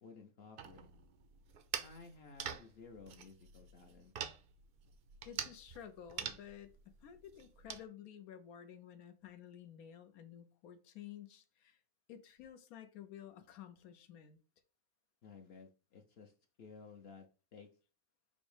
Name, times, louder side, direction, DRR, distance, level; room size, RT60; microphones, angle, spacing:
voice 1, 0.0-0.9 1.8-4.1 15.2-16.3 16.6-17.7, left 4 dB, 55° left, 0.7 m, -55 dB
sound 1, 0.6-7.8, right 8 dB, 65° right, 0.5 m, -46 dB
voice 2, 5.2-11.8 12.1-14.4, left 9 dB, 90° left, 1.2 m, -53 dB
5.2 x 2.1 x 4.8 m
omnidirectional pair, 1.5 m